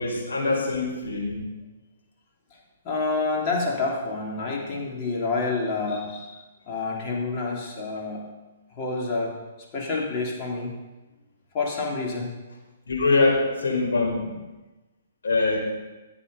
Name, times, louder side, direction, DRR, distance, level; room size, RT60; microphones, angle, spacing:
voice 1, 0.0-1.5 12.9-14.4 15.2-15.6, left 3 dB, 80° left, -2 dB, 5.2 m, -23 dB
voice 2, 2.8-8.3 8.7-9.4 9.7-10.7 11.5-12.3, left 3 dB, 35° left, -3 dB, 3.6 m, -28 dB
14.0 x 8.6 x 5.6 m, 1.1 s
hypercardioid pair, 145°, 0 cm